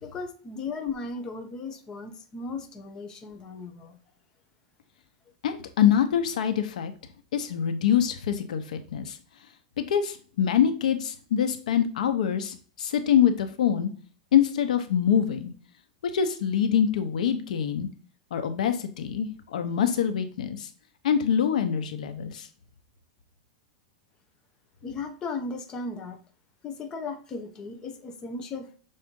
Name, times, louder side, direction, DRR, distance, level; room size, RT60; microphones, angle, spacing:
voice 1, 0.0-4.0 24.8-26.2 26.6-28.8, left 4 dB, 20° left, 3 dB, 0.8 m, -36 dB
voice 2, 5.4-6.9 7.3-9.2 9.8-13.9 14.3-15.5 16.1-17.9 18.3-20.7 21.0-22.5, left 9 dB, 85° left, 8 dB, 0.9 m, -25 dB
6.3 x 4.2 x 3.7 m, 0.41 s
supercardioid pair, 155°, 4 cm